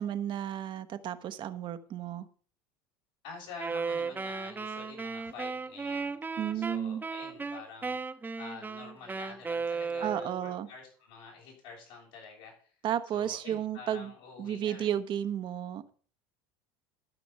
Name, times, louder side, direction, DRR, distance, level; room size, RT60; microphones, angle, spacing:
voice 1, 0.0-2.3 6.4-7.0 10.0-10.7 12.8-14.1 14.4-15.9, right 10 dB, 45° right, 9 dB, 1.0 m, -33 dB
voice 2, 3.2-6.1 6.5-12.7 13.1-15.0, left 5 dB, 80° left, -2 dB, 7.2 m, -48 dB
Wind instrument woodwind instrument, 3.6-10.5, right 4 dB, 15° right, 0.9 m, -36 dB
13.0 x 6.1 x 5.5 m, 0.43 s
supercardioid pair, 95°, 11 cm